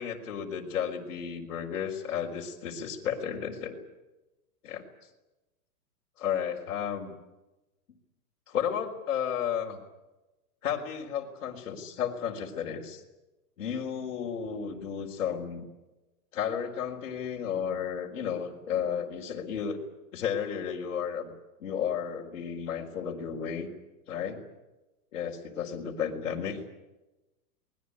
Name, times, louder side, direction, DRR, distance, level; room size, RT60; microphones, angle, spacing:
voice 1, 0.0-3.8 4.6-4.9 6.2-7.1 8.5-9.8 10.6-13.0 13.6-15.7 16.3-19.8 20.1-21.3 21.6-23.7 24.1-24.4 25.1-26.6, left 8 dB, 55° left, -1 dB, 4.2 m, -33 dB
24.5 x 20.5 x 9.7 m, 1.0 s
supercardioid pair, 175°, 45 cm